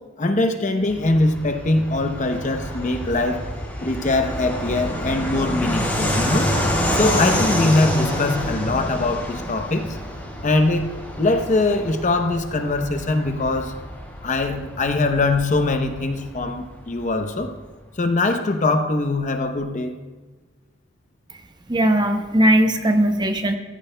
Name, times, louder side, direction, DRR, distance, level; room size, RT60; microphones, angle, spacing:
voice 1, 0.2-3.4 3.8-6.5 6.9-9.9 10.4-10.9 11.2-13.7 14.2-17.5 18.0-19.9, left 2 dB, 40° left, 6 dB, 0.8 m, -22 dB
Fixed-wing aircraft airplane, 0.8-17.0, equal, 10° left, 3.0 m, -27 dB
voice 2, 21.7-23.6, right 1 dB, 20° right, 6 dB, 0.7 m, -18 dB
14.5 x 13.5 x 2.2 m, 1.3 s
head